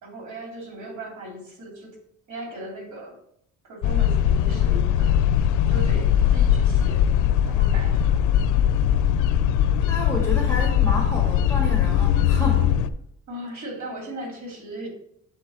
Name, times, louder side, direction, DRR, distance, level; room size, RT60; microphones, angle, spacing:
voice 1, 0.0-2.0 2.3-3.2 3.6-5.2 5.6-7.0 7.5-8.2 13.3-14.9, right 1 dB, 70° right, 0 dB, 2.7 m, -37 dB
sound 1, 3.8-12.9, left 10 dB, 80° left, 0.5 m, -20 dB
voice 2, 9.9-12.7, left 1 dB, 10° left, -2 dB, 1.6 m, -30 dB
7.7 x 3.8 x 4.9 m, 0.72 s
cardioid pair, 90°, 30 cm